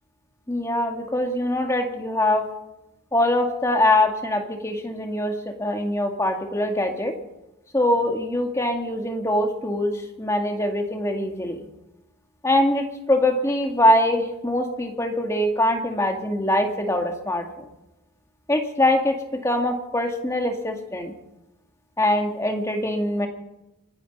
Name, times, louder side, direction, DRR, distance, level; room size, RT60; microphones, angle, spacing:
voice 1, 0.5-2.4 3.1-7.1 7.7-11.6 12.4-17.7 18.5-21.1 22.0-23.3, left 1 dB, 15° left, 3 dB, 1.8 m, -23 dB
24.0 x 9.8 x 5.5 m, 0.92 s
head